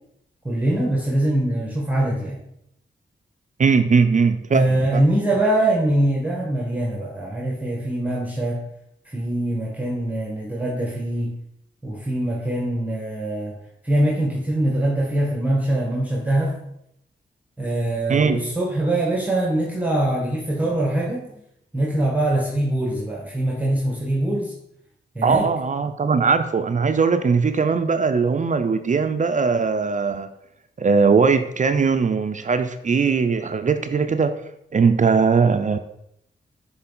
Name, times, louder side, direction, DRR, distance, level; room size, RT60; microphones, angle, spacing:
voice 1, 0.4-2.4 4.5-8.7 9.0-11.4 11.8-13.5 13.8-16.6 17.6-21.2 21.7-24.5 25.1-25.5, right 1 dB, 10° right, -1 dB, 1.4 m, -23 dB
voice 2, 3.6-5.0 18.1-18.5 25.2-30.3 30.8-34.4 34.7-35.8, right 5 dB, 40° right, 9 dB, 0.5 m, -20 dB
6.6 x 3.9 x 3.9 m, 0.77 s
cardioid pair, 55°, 19 cm